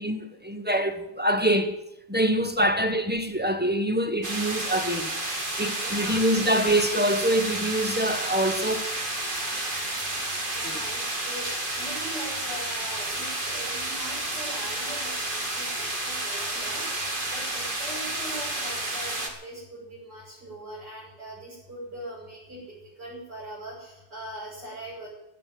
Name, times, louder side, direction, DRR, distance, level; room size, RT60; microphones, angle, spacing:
voice 1, 0.0-1.7 2.1-5.1 5.6-8.9, right 1 dB, 5° right, 1.1 m, -25 dB
sound 1, 4.2-19.3, right 2 dB, 30° right, 2.3 m, -31 dB
voice 2, 5.8-6.2 10.5-25.1, right 1 dB, 70° right, 7.3 m, -41 dB
16.0 x 8.9 x 9.3 m
omnidirectional pair, 1.9 m